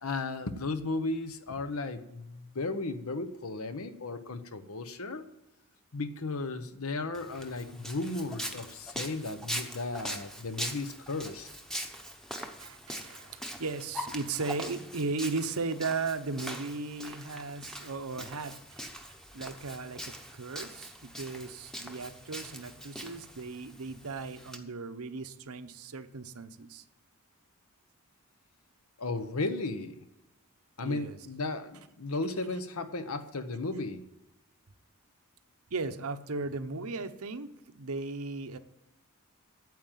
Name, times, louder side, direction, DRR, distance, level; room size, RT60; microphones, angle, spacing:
voice 1, 0.0-5.2 5.9-11.5 29.0-30.0 30.8-34.0, left 3 dB, 75° left, 10 dB, 1.0 m, -35 dB
Walk footsteps, 7.1-24.6, equal, ahead, 0.9 m, -42 dB
voice 2, 12.6-18.8 19.3-26.8 30.8-31.2 35.7-38.6, right 3 dB, 75° right, 10 dB, 0.8 m, -36 dB
9.3 x 7.6 x 9.1 m, 0.95 s
head